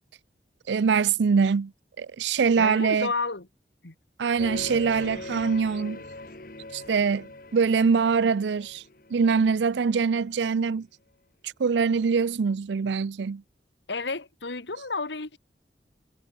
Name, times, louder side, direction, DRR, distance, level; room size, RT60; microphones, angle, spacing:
voice 1, 0.7-1.7 2.0-3.1 4.2-6.0 6.7-8.8 9.1-10.9 11.4-13.4, right 5 dB, 90° right, 0.4 m, -23 dB
voice 2, 2.6-3.5 3.8-3.9 13.9-15.4, left 3 dB, 90° left, 2.0 m, -31 dB
sound 1, 4.4-10.0, left 2 dB, 50° left, 1.6 m, -41 dB
head